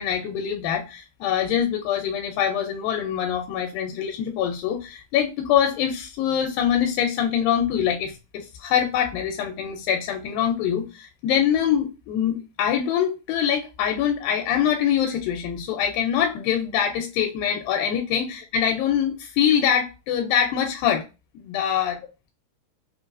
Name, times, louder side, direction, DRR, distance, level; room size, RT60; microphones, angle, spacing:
voice 1, 0.0-21.0 21.4-22.0, left 9 dB, 90° left, 2.4 m, -24 dB
5.3 x 2.3 x 2.4 m
omnidirectional pair, 4.0 m